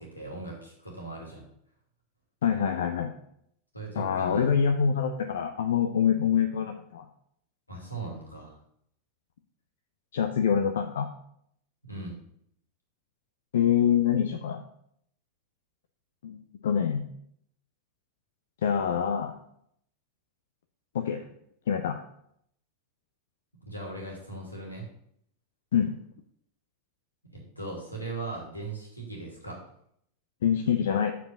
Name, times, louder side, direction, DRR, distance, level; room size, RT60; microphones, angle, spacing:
voice 1, 0.0-1.4 3.7-4.6 7.7-8.5 11.8-12.2 23.6-24.9 27.3-29.6, right 3 dB, 85° left, -1 dB, 2.6 m, -39 dB
voice 2, 2.4-3.1 4.0-7.0 10.1-11.1 13.5-14.6 16.2-17.1 18.6-19.3 20.9-21.3 21.7-22.0 25.7-25.9 30.4-31.1, left 8 dB, 60° left, 6 dB, 0.6 m, -25 dB
6.9 x 4.8 x 6.8 m, 0.71 s
figure-of-eight pair, 90°, 0 cm